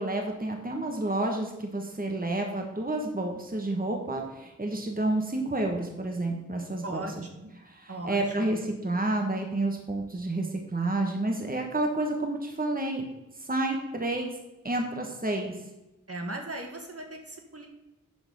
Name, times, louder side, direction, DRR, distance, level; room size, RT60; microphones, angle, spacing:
voice 1, 0.0-7.1 7.6-13.0 13.4-14.3 14.6-15.5, right 2 dB, 25° right, 2 dB, 1.3 m, -30 dB
voice 2, 6.8-7.5 7.9-8.5 16.1-17.7, right 2 dB, 45° right, 2 dB, 1.5 m, -38 dB
11.5 x 4.0 x 5.4 m, 1.0 s
wide cardioid pair, 50°, 32 cm